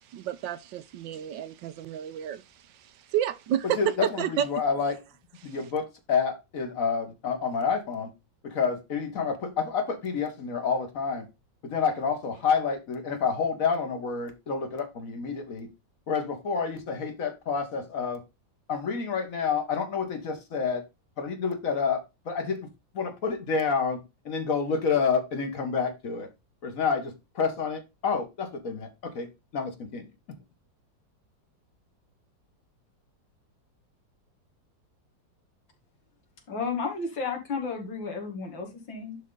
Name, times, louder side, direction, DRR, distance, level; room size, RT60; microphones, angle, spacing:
voice 1, 0.1-2.4 3.1-4.5, right 10 dB, 75° right, 1.4 m, -30 dB
voice 2, 3.6-5.0 5.4-8.1 8.4-11.3 11.6-15.7 16.1-18.2 18.7-20.8 21.2-22.7 22.9-24.0 24.3-26.3 26.6-30.1, left 5 dB, 45° left, 1.7 m, -29 dB
voice 3, 36.5-39.2, left 4 dB, 80° left, 2.9 m, -32 dB
11.0 x 3.8 x 3.8 m
omnidirectional pair, 2.1 m